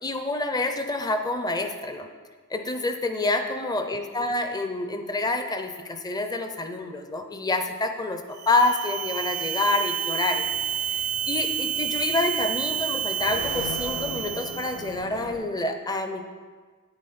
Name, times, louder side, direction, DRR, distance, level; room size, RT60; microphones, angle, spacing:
voice 1, 0.0-2.1 2.5-10.5 10.8-16.2, left 2 dB, 20° left, 6 dB, 0.6 m, -27 dB
sound 1, 8.3-14.9, right 9 dB, 70° right, 0.6 m, -29 dB
sound 2, 10.3-15.3, left 1 dB, 80° left, 3.1 m, -40 dB
9.3 x 8.8 x 4.3 m, 1.5 s
head